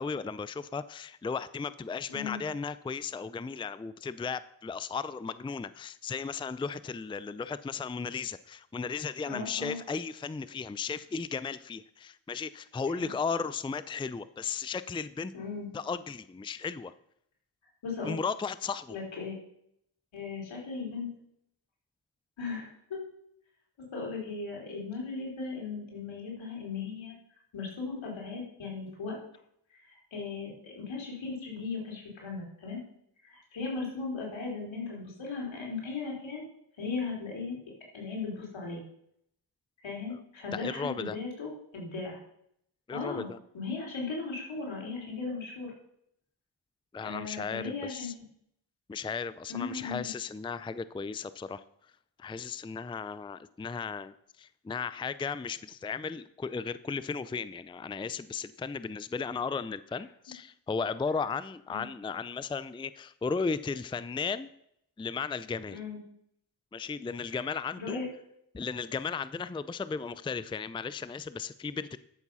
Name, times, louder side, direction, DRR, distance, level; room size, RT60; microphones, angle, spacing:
voice 1, 0.0-15.3 15.7-16.9 18.0-19.0 40.1-40.2 40.5-41.2 42.9-43.4 46.9-48.1 48.9-51.6 52.2-64.5 65.0-65.8 66.7-68.0 68.5-72.0, left 5 dB, 10° left, 16 dB, 0.4 m, -35 dB
voice 2, 9.2-9.8 12.9-13.1 15.3-15.7 17.8-18.1 18.9-19.4 20.1-21.1 22.4-23.0 23.8-27.2 27.5-29.2 29.7-32.8 33.2-36.4 36.8-37.6 37.9-38.8 39.8-42.2 42.9-45.7 47.0-48.2 49.5-50.1 61.7-61.9 65.7-66.0 67.4-67.5 67.8-68.0, left 4 dB, 80° left, -2 dB, 4.2 m, -37 dB
12.5 x 7.2 x 5.6 m, 0.74 s
cardioid pair, 55°, 45 cm